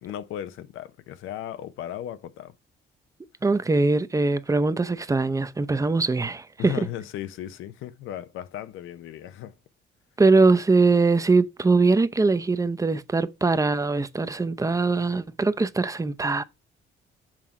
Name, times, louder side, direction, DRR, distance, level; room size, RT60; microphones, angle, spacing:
voice 1, 0.0-2.5 6.6-9.6, left 11 dB, 85° left, 0.7 m, -36 dB
voice 2, 3.4-6.7 10.2-16.4, right 3 dB, 15° right, 0.6 m, -22 dB
7.5 x 3.7 x 5.7 m
cardioid pair, 90°, 20 cm